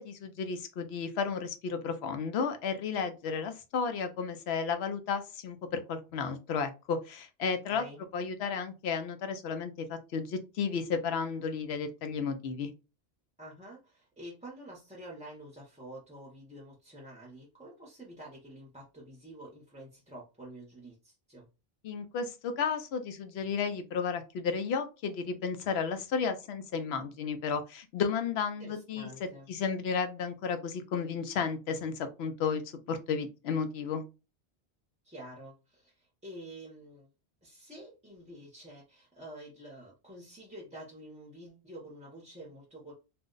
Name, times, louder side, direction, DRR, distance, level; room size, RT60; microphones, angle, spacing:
voice 1, 0.0-7.8 8.1-12.7 21.8-32.6 32.9-34.0, left 5 dB, 80° left, 8 dB, 0.8 m, -33 dB
voice 2, 7.7-8.0 13.4-21.5 28.6-29.5 35.0-37.1 37.4-42.9, right 1 dB, 10° right, -4 dB, 0.6 m, -48 dB
2.5 x 2.1 x 3.7 m, 0.29 s
omnidirectional pair, 1.1 m